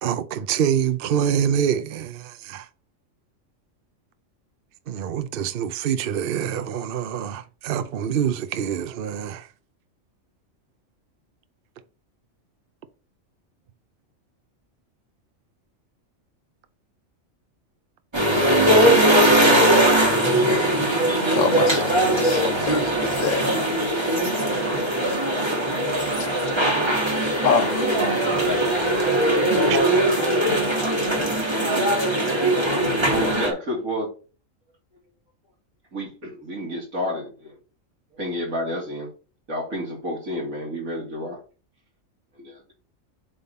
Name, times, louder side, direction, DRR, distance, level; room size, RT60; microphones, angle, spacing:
voice 1, 0.0-2.6 4.9-9.4, right 8 dB, 55° right, 0.7 m, -25 dB
sound 1, 18.1-33.5, right 1 dB, 20° right, 1.5 m, -20 dB
voice 2, 21.3-23.6 27.4-27.9, left 6 dB, 70° left, 1.2 m, -26 dB
voice 3, 27.5-27.8 28.4-29.8 30.1-30.2 32.9-34.1 35.9-37.3 38.2-39.1 39.5-41.4 42.4-42.7, equal, 85° right, 3.1 m, -30 dB
7.5 x 3.8 x 4.1 m
omnidirectional pair, 1.4 m